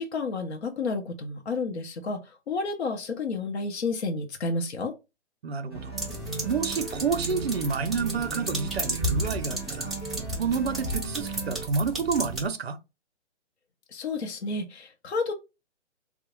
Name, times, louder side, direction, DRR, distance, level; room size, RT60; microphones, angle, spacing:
voice 1, 0.0-4.9 13.9-15.3, left 3 dB, 65° left, 0.7 m, -31 dB
voice 2, 5.4-5.9 6.5-9.9 10.4-12.8, right 5 dB, 60° right, 0.5 m, -29 dB
sound 1, 5.7-11.7, right 4 dB, 20° left, 0.7 m, -37 dB
sound 2, 6.0-12.5, right 1 dB, ahead, 0.4 m, -33 dB
3.7 x 2.1 x 3.0 m
hypercardioid pair, 180°, 36 cm